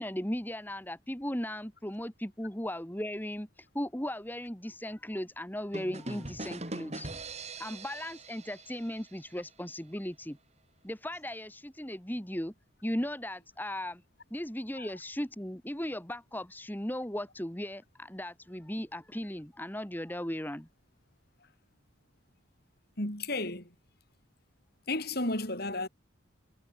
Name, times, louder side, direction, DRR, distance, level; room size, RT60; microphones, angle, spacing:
voice 1, 0.0-7.1 7.6-10.4 10.8-12.5 12.8-14.0 14.3-20.7, left 1 dB, 10° left, 1.8 m, -37 dB
sound 1, 5.7-9.5, right 2 dB, 35° right, 4.7 m, -42 dB
voice 2, 23.0-23.7 24.9-25.9, left 2 dB, 50° left, 6.2 m, -33 dB
head